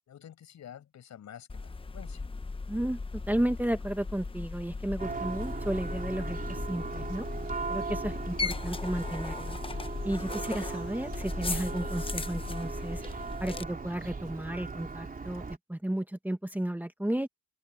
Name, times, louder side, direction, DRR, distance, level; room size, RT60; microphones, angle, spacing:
voice 1, 0.1-2.2 7.0-7.1, left 9 dB, 65° left, 7.9 m, -49 dB
sound 1, 1.5-13.6, left 3 dB, 20° left, 0.9 m, -37 dB
voice 2, 2.7-3.0 3.3-7.3 7.7-9.6 10.0-13.0 13.4-17.3, right 1 dB, 5° right, 1.7 m, -33 dB
Church bell, 5.0-15.6, right 4 dB, 30° right, 3.5 m, -38 dB
open air
cardioid pair, 90°, 30 cm